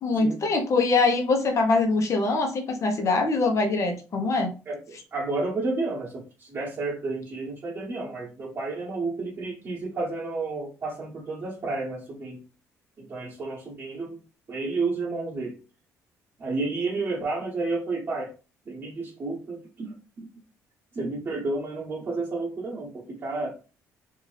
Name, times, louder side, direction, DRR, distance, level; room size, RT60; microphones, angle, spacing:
voice 1, 0.0-4.5, left 3 dB, 45° left, 3 dB, 1.0 m, -23 dB
voice 2, 4.7-12.4 13.0-14.2 14.5-15.6 16.4-18.3 18.7-20.0 20.9-23.6, right 3 dB, 35° right, -6 dB, 1.1 m, -31 dB
2.7 x 2.5 x 3.2 m, 0.34 s
supercardioid pair, 75°, 7 cm